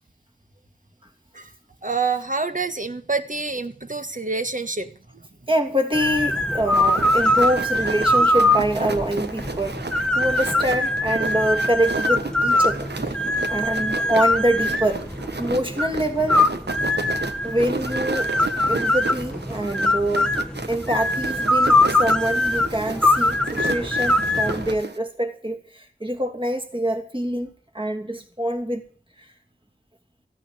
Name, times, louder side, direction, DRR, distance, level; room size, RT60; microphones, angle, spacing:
voice 1, 1.8-4.9, right 4 dB, 40° right, 8 dB, 1.5 m, -27 dB
voice 2, 5.5-9.8 10.1-13.2 13.5-15.1 15.4-16.5 17.4-18.3 18.7-20.4 20.7-28.8, right 1 dB, 25° right, 5 dB, 2.8 m, -25 dB
sound 1, 5.9-24.8, left 1 dB, 5° left, 1.1 m, -22 dB
sound 2, 6.7-25.0, right 3 dB, 55° right, 1.2 m, -33 dB
15.0 x 9.6 x 7.8 m, 0.42 s
wide cardioid pair, 45°, 20 cm